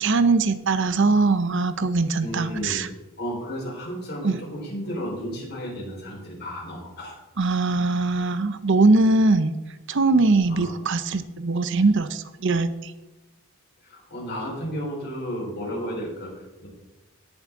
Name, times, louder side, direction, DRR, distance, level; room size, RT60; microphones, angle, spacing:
voice 1, 0.0-2.9 4.2-4.4 7.4-9.5 9.9-12.9, right 3 dB, 55° right, 12 dB, 0.6 m, -21 dB
voice 2, 2.2-2.8 3.2-7.2 10.5-10.7 13.8-16.7, equal, 45° left, -3 dB, 4.5 m, -33 dB
17.0 x 7.2 x 3.7 m, 1.1 s
head